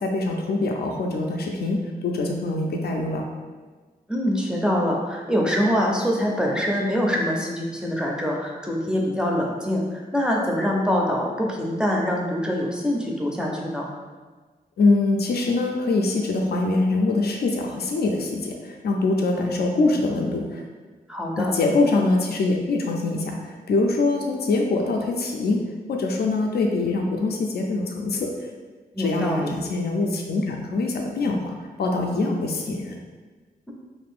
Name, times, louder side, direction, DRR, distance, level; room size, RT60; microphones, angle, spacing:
voice 1, 0.0-3.2 14.8-20.6 21.4-25.6 25.9-28.3 29.0-33.0, left 3 dB, 85° left, 1 dB, 0.4 m, -24 dB
voice 2, 4.1-13.9 21.1-21.5 28.9-29.5, equal, 5° right, -2 dB, 0.4 m, -24 dB
2.6 x 2.4 x 3.4 m, 1.4 s
wide cardioid pair, 115°, 16 cm